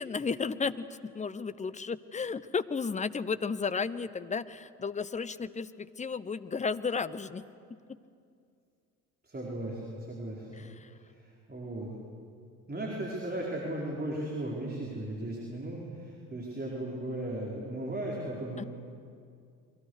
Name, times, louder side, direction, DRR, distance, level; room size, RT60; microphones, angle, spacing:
voice 1, 0.0-7.4 10.6-10.9 18.6-18.7, left 5 dB, 15° left, 14 dB, 0.9 m, -33 dB
voice 2, 9.2-10.6 11.2-11.9 12.7-18.7, right 1 dB, 20° right, -3 dB, 5.1 m, -36 dB
29.0 x 23.5 x 6.7 m, 2.4 s
figure-of-eight pair, 60°, 46 cm